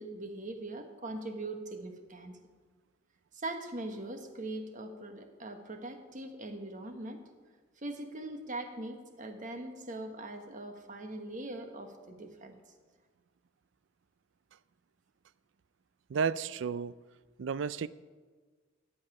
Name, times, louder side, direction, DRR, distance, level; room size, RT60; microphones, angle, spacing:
voice 1, 0.0-2.4 3.3-7.2 7.8-12.6, right 2 dB, 45° right, 1.3 m, -41 dB
voice 2, 16.1-17.0 17.4-17.9, right 6 dB, 75° right, 0.4 m, -32 dB
14.0 x 5.5 x 9.2 m
head